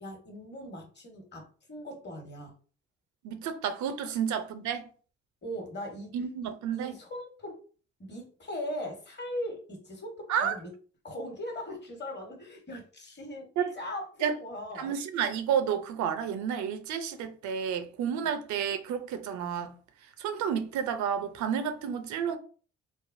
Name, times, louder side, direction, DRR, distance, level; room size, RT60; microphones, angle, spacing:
voice 1, 0.0-2.5 4.0-4.1 5.4-6.1 6.7-7.6 8.0-10.7 11.0-13.5 13.8-14.9, equal, 35° left, 1.2 m, -39 dB
voice 2, 3.2-4.9 6.1-7.0 10.3-10.5 13.6-13.7 14.2-14.3 14.8-19.8 20.2-22.4, right 8 dB, 75° right, 0.5 m, -31 dB
3.3 x 2.0 x 2.5 m
supercardioid pair, 55°, 30 cm